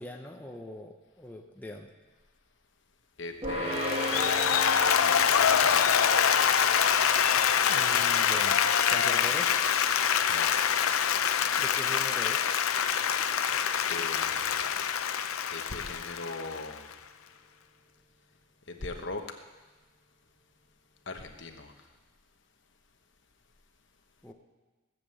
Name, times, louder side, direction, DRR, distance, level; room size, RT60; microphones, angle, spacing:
voice 1, 0.0-1.9 7.7-8.6 8.9-9.5 11.6-12.6 24.2-24.3, left 1 dB, 10° left, 1 dB, 0.7 m, -42 dB
voice 2, 3.2-4.5 5.3-6.0 10.3-10.5 13.9-14.7 15.5-16.9 18.7-19.2 21.1-21.7, left 3 dB, 60° left, 5 dB, 1.1 m, -39 dB
sound 1, 3.4-14.7, equal, 25° right, 1.5 m, -39 dB
Applause, 3.7-16.9, left 8 dB, 85° left, 0.6 m, -25 dB
17.5 x 7.6 x 7.6 m, 1.3 s
head